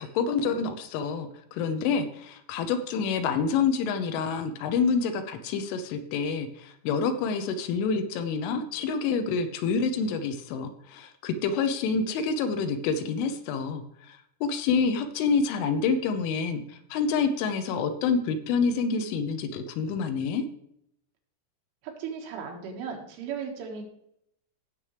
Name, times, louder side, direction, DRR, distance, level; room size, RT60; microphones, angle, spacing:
voice 1, 0.0-20.4, left 5 dB, 80° left, 8 dB, 3.2 m, -27 dB
voice 2, 21.8-23.8, right 6 dB, 75° right, 1 dB, 4.3 m, -36 dB
16.5 x 7.2 x 3.4 m, 0.74 s
omnidirectional pair, 5.8 m